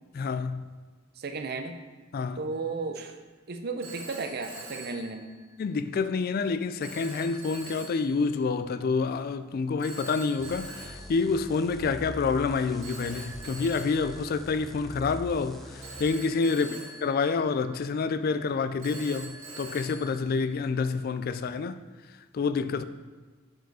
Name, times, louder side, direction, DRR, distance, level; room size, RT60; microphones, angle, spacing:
voice 1, 0.1-0.7 2.1-2.4 5.6-21.8 22.3-22.8, left 4 dB, 50° left, 0.3 m, -28 dB
voice 2, 1.2-1.8 2.4-3.2 3.5-5.3 16.5-16.8, right 4 dB, 50° right, 0.6 m, -34 dB
Telephone, 2.5-2.9 3.8-5.8 6.8-8.5 9.8-12.0 12.8-15.1 15.8-18.1 18.8-21.0, right 2 dB, 70° right, 1.6 m, -45 dB
sound 1, 10.4-16.0, equal, ahead, 0.7 m, -43 dB
7.9 x 4.8 x 4.8 m
head